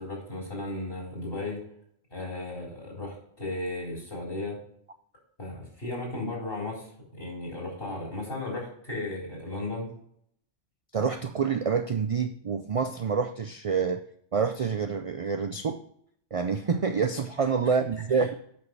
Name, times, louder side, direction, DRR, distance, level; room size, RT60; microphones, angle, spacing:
voice 1, 0.0-1.6 2.1-4.6 5.4-9.9 18.1-18.2, left 2 dB, 50° left, -4 dB, 4.6 m, -35 dB
voice 2, 10.9-14.0 14.3-15.8 16.3-18.4, right 5 dB, 65° right, 8 dB, 0.3 m, -27 dB
8.4 x 6.2 x 4.6 m, 0.68 s
omnidirectional pair, 1.2 m